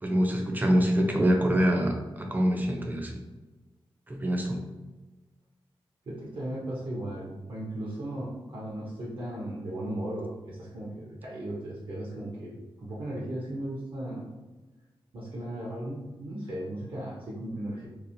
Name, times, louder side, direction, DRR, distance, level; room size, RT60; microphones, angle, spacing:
voice 1, 0.0-3.2 4.1-4.6, equal, 20° right, 2 dB, 0.4 m, -25 dB
voice 2, 6.1-14.3 15.1-17.9, right 1 dB, 65° right, -4 dB, 0.6 m, -36 dB
2.9 x 2.0 x 2.6 m, 1.2 s
wide cardioid pair, 90°, 9 cm